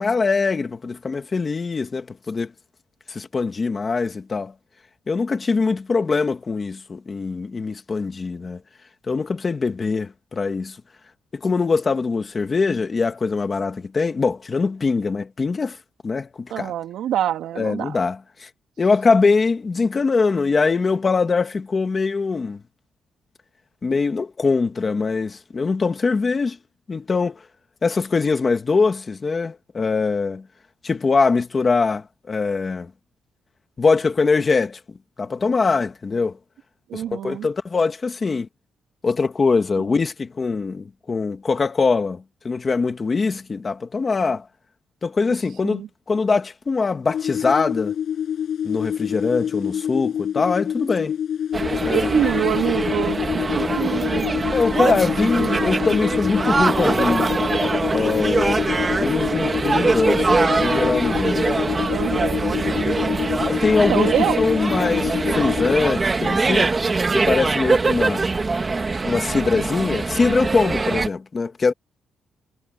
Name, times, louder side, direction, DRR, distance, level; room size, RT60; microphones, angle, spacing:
voice 1, 0.0-2.5 3.1-4.5 5.1-8.6 9.1-10.8 11.3-15.8 16.0-16.7 17.6-18.5 18.8-22.6 23.8-26.6 26.9-27.4 27.8-30.4 30.8-32.9 33.8-34.8 35.2-36.4 36.9-38.5 39.0-44.4 45.0-45.8 46.1-47.9 48.6-51.2 51.8-52.1 54.5-57.3 57.9-58.7 59.0-61.5 63.5-66.8 67.1-68.3 69.0-71.7, left 4 dB, 25° left, 1.9 m, -22 dB
voice 2, 16.5-18.0 36.9-37.5 39.8-39.9 45.6-45.9 51.9-54.5 54.8-56.0 61.9-63.4 63.9-64.4, right 11 dB, 80° right, 2.7 m, -26 dB
sound 1, 47.1-65.7, left 9 dB, 55° left, 6.1 m, -26 dB
sound 2, 51.5-71.1, right 3 dB, 20° right, 2.0 m, -23 dB
cardioid pair, 155°, 0 cm